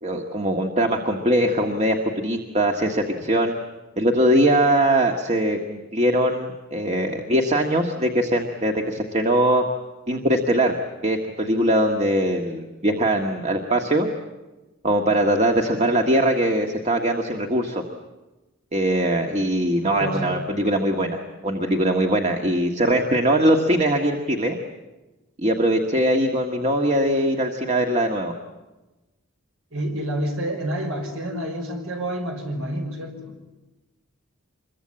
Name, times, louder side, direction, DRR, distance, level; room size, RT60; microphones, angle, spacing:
voice 1, 0.0-3.6 4.0-9.6 10.1-10.7 11.0-14.1 14.8-17.8 18.7-24.6 25.4-28.3, right 1 dB, 30° right, 3 dB, 1.6 m, -21 dB
voice 2, 19.8-20.5 29.7-33.4, right 1 dB, 70° right, 4 dB, 5.7 m, -29 dB
26.0 x 22.5 x 8.8 m, 1.1 s
head